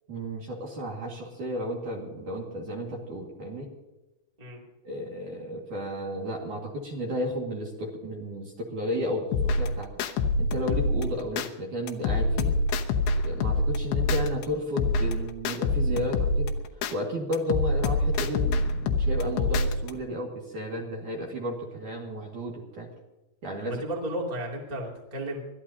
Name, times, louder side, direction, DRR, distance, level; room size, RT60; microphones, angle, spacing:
voice 1, 0.1-3.7 4.8-9.9 10.4-12.5 13.2-16.5 16.9-22.9 23.4-23.8, equal, 50° right, 0 dB, 2.9 m, -33 dB
sound 1, 9.3-11.5 11.9-14.4 14.8-16.9 17.3-19.9, left 2 dB, 75° left, 2.4 m, -26 dB
voice 2, 23.6-25.4, right 1 dB, 15° right, -2 dB, 1.5 m, -33 dB
24.0 x 15.0 x 2.9 m, 1.1 s
omnidirectional pair, 5.7 m